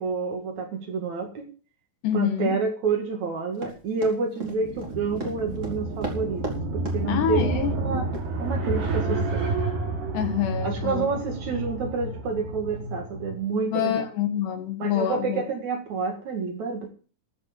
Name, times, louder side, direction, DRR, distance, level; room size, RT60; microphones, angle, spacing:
voice 1, 0.0-1.5 2.1-6.5 6.7-8.1 8.4-9.6 10.6-14.0 14.8-16.9, right 4 dB, 55° right, 4 dB, 2.7 m, -29 dB
voice 2, 2.0-2.6 7.1-7.7 10.1-11.1 13.7-15.4, left 10 dB, 85° left, 7 dB, 3.7 m, -26 dB
Run, 3.6-6.6 6.8-7.0 7.4-7.7 8.1-8.3 8.8-8.9, right 3 dB, 20° right, 2.8 m, -35 dB
sound 1, 4.6-13.4, right 2 dB, 85° right, 5.7 m, -30 dB
14.0 x 6.2 x 7.5 m, 0.38 s
omnidirectional pair, 4.7 m